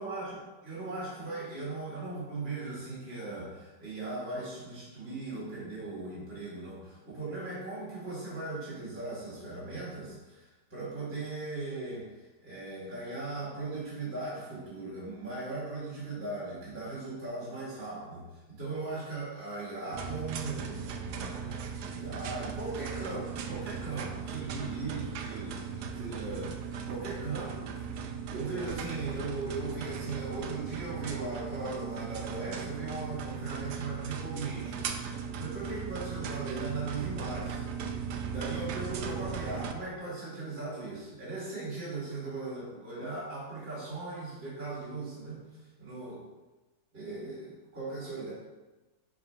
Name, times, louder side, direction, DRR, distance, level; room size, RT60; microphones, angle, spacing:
voice 1, 0.0-27.8 28.3-38.0 38.2-45.4 45.8-46.2 46.9-48.3, right 3 dB, 30° right, -7 dB, 2.6 m, -38 dB
sound 1, 19.9-39.7, right 6 dB, 70° right, 1.1 m, -38 dB
7.6 x 4.1 x 5.4 m, 1.1 s
omnidirectional pair, 2.1 m